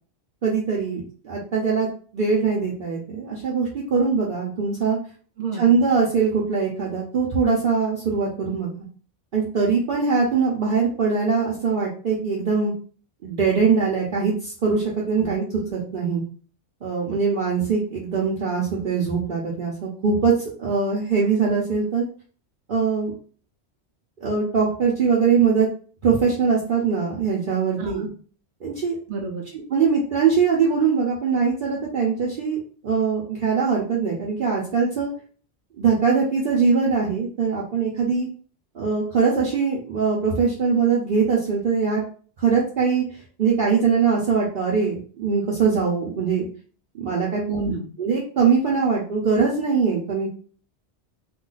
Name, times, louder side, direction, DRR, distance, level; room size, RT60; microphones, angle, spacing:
voice 1, 0.4-1.9 2.1-5.0 5.6-8.9 9.3-12.7 13.2-15.4 15.7-16.2 16.8-22.1 22.7-23.1 24.2-25.7 26.0-28.1 28.6-29.0 29.7-32.6 32.8-35.1 35.8-38.3 38.7-42.0 42.4-46.5 46.9-47.4 48.0-50.3, right 5 dB, 55° right, -5 dB, 0.8 m, -22 dB
voice 2, 5.4-5.8 15.2-15.4 27.8-28.1 29.1-29.5 47.5-47.9, right 4 dB, 85° right, 1 dB, 0.9 m, -29 dB
2.4 x 2.3 x 3.8 m, 0.42 s
omnidirectional pair, 1.1 m